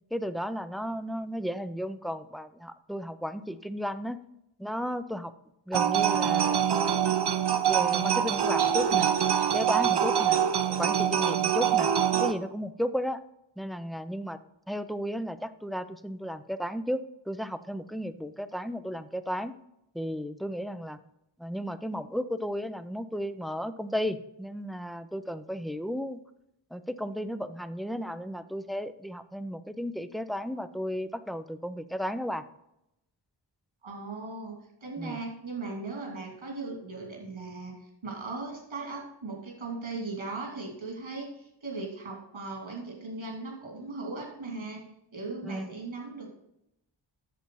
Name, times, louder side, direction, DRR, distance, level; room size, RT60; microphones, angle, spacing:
voice 1, 0.1-4.2 4.6-5.3 5.7-6.7 7.7-9.1 9.5-10.4 10.8-11.9 12.2-13.2 13.6-14.4 14.7-19.5 19.9-21.0 21.4-26.2 26.7-32.4 35.0-35.2 45.4-45.7, equal, ahead, 11 dB, 0.4 m, -34 dB
sound 1, 5.7-12.3, right 9 dB, 60° right, 0.7 m, -25 dB
voice 2, 33.8-34.5 34.8-44.8 45.1-46.3, right 3 dB, 90° right, -1 dB, 2.8 m, -38 dB
8.3 x 6.8 x 4.6 m, 0.82 s
wide cardioid pair, 75°, 45 cm